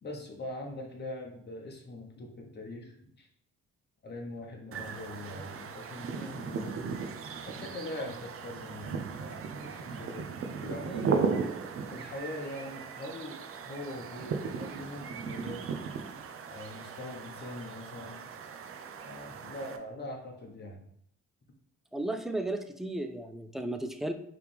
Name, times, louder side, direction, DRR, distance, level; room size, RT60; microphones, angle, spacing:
voice 1, 0.0-3.3 4.0-7.0 7.4-11.1 11.9-15.7 16.5-18.2 19.0-20.8, left 1 dB, 35° left, 1 dB, 1.1 m, -42 dB
sound 1, 4.7-19.8, right 5 dB, 45° right, 0.6 m, -37 dB
voice 2, 21.9-24.1, right 1 dB, ahead, 8 dB, 0.4 m, -34 dB
4.8 x 3.3 x 3.4 m, 0.71 s
cardioid pair, 90°, 30 cm